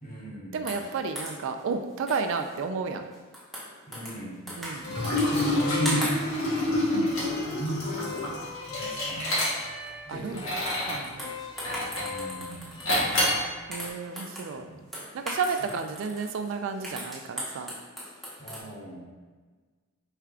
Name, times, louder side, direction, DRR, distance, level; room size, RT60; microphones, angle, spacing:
voice 1, 0.0-0.7 3.9-6.8 7.5-8.4 8.7-9.3 10.1-10.6 12.0-12.7 14.5-14.8 18.4-19.0, right 2 dB, 40° left, -5 dB, 1.1 m, -36 dB
voice 2, 0.5-3.0 4.6-5.1 6.9-7.6 10.1-10.4 10.8-11.4 12.9-14.7 15.1-17.7, right 5 dB, 65° right, 7 dB, 0.3 m, -33 dB
sound 1, 0.7-1.6 2.1-2.6 2.9-4.2 4.5-5.6 5.8-6.8 7.2-7.4 7.7-8.5 8.9-9.3 9.6-9.7 10.1-10.3 11.0-13.4 13.7-14.5 14.9-18.6, equal, ahead, 0.8 m, -39 dB
Liquid, 4.8-9.9 10.3-11.1 11.6-12.2 12.9-13.5, left 1 dB, 80° left, 1.4 m, -27 dB
sound 2, 4.8-13.0, left 5 dB, 20° left, 0.3 m, -41 dB
4.4 x 3.5 x 2.4 m, 1.4 s
head